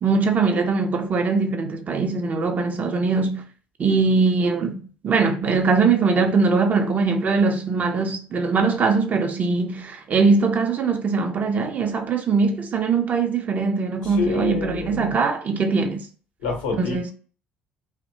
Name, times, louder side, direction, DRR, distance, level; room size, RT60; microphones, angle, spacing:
voice 1, 0.0-3.4 3.8-16.1 16.8-17.1, right 4 dB, 35° right, 0.5 m, -21 dB
voice 2, 14.2-15.1 16.4-17.1, left 4 dB, 70° left, 0.8 m, -27 dB
2.7 x 2.1 x 2.6 m
figure-of-eight pair, 55°, 5 cm